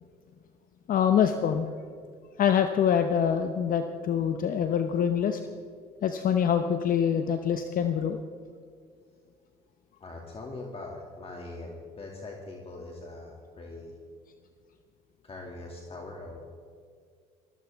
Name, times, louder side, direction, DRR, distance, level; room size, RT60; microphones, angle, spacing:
voice 1, 0.9-1.7 2.4-5.4 6.0-8.2, left 8 dB, 50° left, 7 dB, 0.9 m, -25 dB
voice 2, 10.0-13.9 15.2-16.4, left 2 dB, 35° left, 0 dB, 2.4 m, -42 dB
20.5 x 14.5 x 3.5 m, 2.2 s
supercardioid pair, 80°, 18 cm